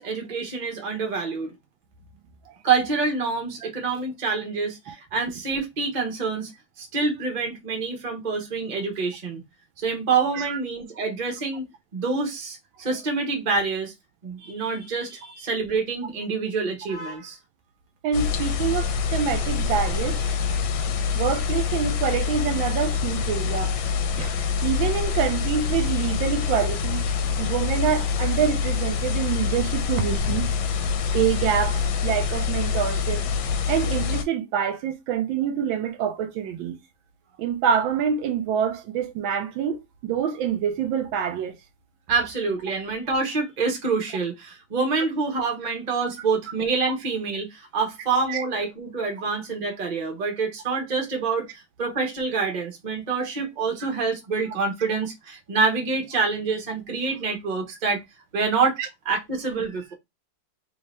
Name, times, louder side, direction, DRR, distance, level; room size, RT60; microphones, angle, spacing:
voice 1, 0.0-1.5 2.6-6.5 6.8-9.4 9.8-11.7 11.9-13.9 14.2-17.4 20.0-20.1 24.2-24.3 42.1-58.0 58.3-58.8 59.0-59.9, right 4 dB, 30° right, 0.9 m, -26 dB
voice 2, 18.0-20.2 21.1-23.7 24.2-24.4 24.6-27.0 27.4-30.5 31.1-33.2 33.7-36.8 37.4-41.5 48.3-48.4, right 8 dB, 80° right, 1.3 m, -26 dB
sound 1, 18.1-34.2, left 6 dB, 80° left, 1.4 m, -25 dB
3.3 x 2.8 x 3.2 m
omnidirectional pair, 2.2 m